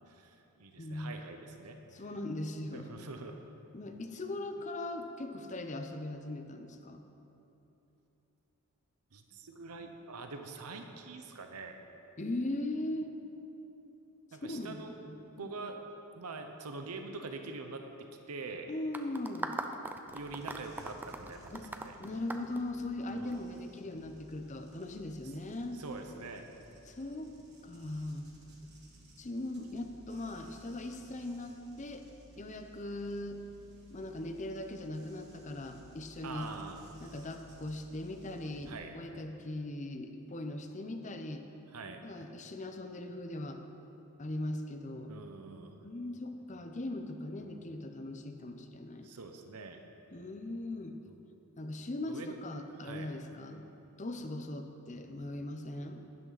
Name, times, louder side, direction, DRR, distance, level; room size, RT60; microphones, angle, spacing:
voice 1, 0.1-2.0 2.7-3.4 9.1-11.7 14.3-14.9 15.4-15.8 16.1-18.7 20.1-22.0 23.1-23.4 25.7-26.5 36.2-36.8 38.7-38.9 41.7-42.0 45.1-45.8 49.0-49.8 52.1-52.4 52.8-53.1, right 3 dB, 90° right, 5 dB, 0.8 m, -44 dB
voice 2, 0.8-1.1 1.9-2.9 3.7-7.0 12.2-13.1 14.5-15.5 18.7-19.5 21.5-21.7 22.0-25.8 26.9-27.3 27.6-28.3 29.2-32.1 32.4-33.4 33.9-36.5 37.0-41.5 42.0-43.6 44.2-45.1 45.8-49.1 50.1-51.0 51.6-53.7 54.0-56.0, left 1 dB, 35° left, 6 dB, 0.7 m, -39 dB
sound 1, 18.9-23.3, right 2 dB, 10° right, 0.4 m, -40 dB
sound 2, 20.1-38.7, equal, 50° right, 1.6 m, -58 dB
12.0 x 11.0 x 4.0 m, 3.0 s
head